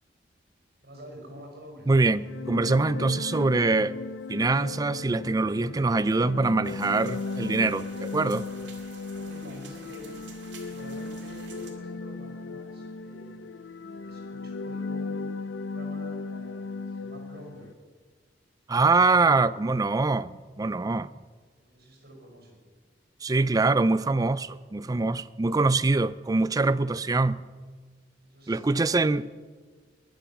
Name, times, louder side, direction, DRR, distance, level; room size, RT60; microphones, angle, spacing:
voice 1, 0.8-1.9 9.2-10.1 10.7-13.5 14.0-15.3 15.6-17.7 21.6-22.6 28.2-29.0, equal, 55° right, 5.3 m, -47 dB
voice 2, 1.9-3.9 4.3-8.5 18.7-21.1 23.2-27.4 28.5-29.2, right 3 dB, 20° right, 0.4 m, -24 dB
sound 1, 2.0-17.7, left 4 dB, 75° left, 0.5 m, -36 dB
sound 2, 6.6-11.7, right 5 dB, 75° right, 2.4 m, -50 dB
20.5 x 7.1 x 7.2 m
head